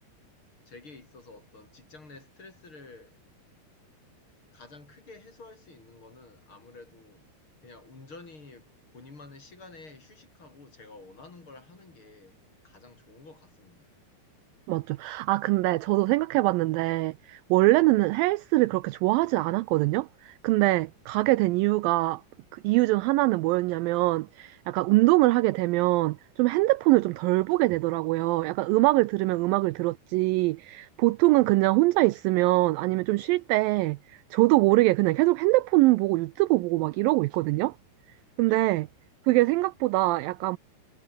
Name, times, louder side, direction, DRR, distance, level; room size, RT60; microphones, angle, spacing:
voice 1, 0.7-3.2 4.5-7.2 7.6-12.4 12.6-13.9 29.3-29.9 38.5-38.7, left 3 dB, 30° left, 5.3 m, -50 dB
voice 2, 14.7-22.2 22.5-37.7 38.4-38.9 39.3-40.6, right 20 dB, 85° right, 2.0 m, -23 dB
omnidirectional pair, 4.6 m